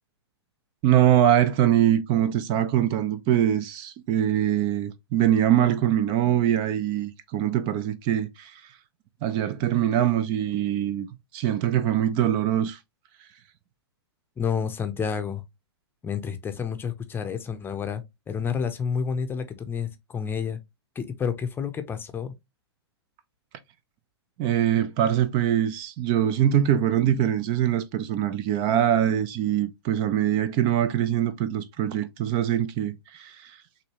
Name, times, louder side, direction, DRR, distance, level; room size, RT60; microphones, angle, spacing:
voice 1, 0.8-8.8 9.2-11.1 11.3-12.8 24.4-33.6, right 11 dB, 35° right, 0.5 m, -23 dB
voice 2, 14.4-15.4 16.0-20.6 20.9-22.3, left 6 dB, 15° left, 0.7 m, -30 dB
6.5 x 2.6 x 2.9 m
hypercardioid pair, 120°, 14 cm